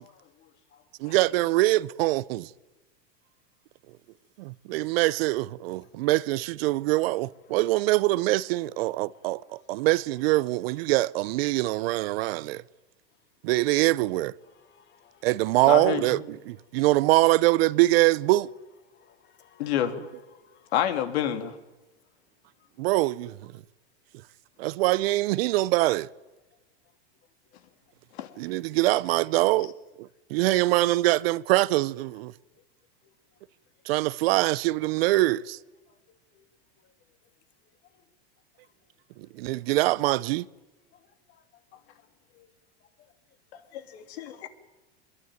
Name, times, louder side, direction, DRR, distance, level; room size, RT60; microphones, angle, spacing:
voice 1, 0.0-1.1 4.8-4.9 14.5-15.3 18.9-20.7 28.3-28.4 36.1-36.5 37.9-38.0 40.9-41.4 41.7-42.1 42.3-42.5 43.0-43.1 44.1-44.5, left 8 dB, 30° left, 2.6 m, -61 dB
voice 2, 1.0-2.5 4.4-12.6 13.4-14.3 15.2-18.5 22.8-23.5 24.6-26.1 28.4-29.7 30.0-32.3 33.9-35.6 39.3-40.5, right 18 dB, 60° right, 0.8 m, -24 dB
voice 3, 15.7-16.1 19.6-20.0 20.7-21.6 28.1-28.3 43.7-44.5, left 10 dB, 70° left, 3.0 m, -28 dB
23.0 x 21.5 x 9.1 m
supercardioid pair, 130°, 33 cm